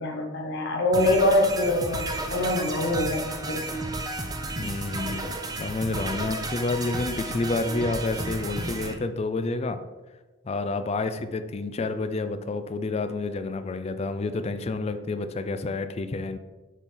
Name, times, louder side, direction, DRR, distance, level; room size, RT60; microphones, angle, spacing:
voice 1, 0.0-3.7, left 1 dB, 60° left, 0 dB, 1.3 m, -24 dB
sound 1, 0.9-8.9, right 2 dB, 20° right, 0.5 m, -32 dB
voice 2, 4.6-9.8 10.5-16.4, left 3 dB, 30° left, 10 dB, 0.4 m, -29 dB
7.2 x 3.8 x 4.2 m, 1.2 s
head